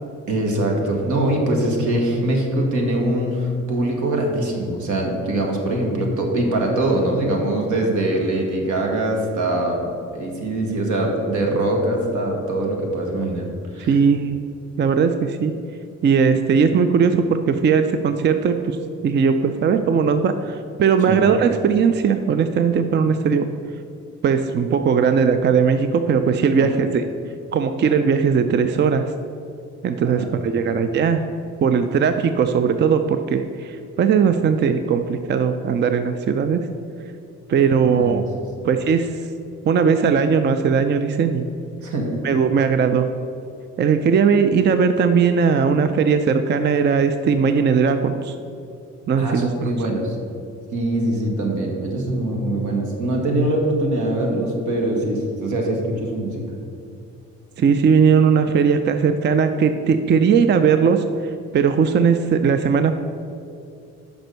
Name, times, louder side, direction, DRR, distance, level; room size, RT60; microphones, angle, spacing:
voice 1, 0.3-13.4 13.7-14.0 21.1-21.2 26.6-26.8 30.0-30.3 30.6-30.7 37.8-38.2 38.6-38.7 41.8-42.2 49.2-50.2 50.7-56.6, right 1 dB, 75° right, 1 dB, 1.5 m, -23 dB
voice 2, 13.9-14.4 14.8-15.5 16.0-18.8 19.0-23.5 24.2-27.0 27.5-29.1 29.8-31.2 31.6-36.7 37.5-38.2 38.6-39.3 39.6-41.5 42.2-43.1 43.8-48.4 49.1-49.7 57.6-63.0, right 6 dB, 35° right, 8 dB, 0.4 m, -18 dB
6.1 x 5.2 x 6.6 m, 2.5 s
cardioid pair, 90°, 30 cm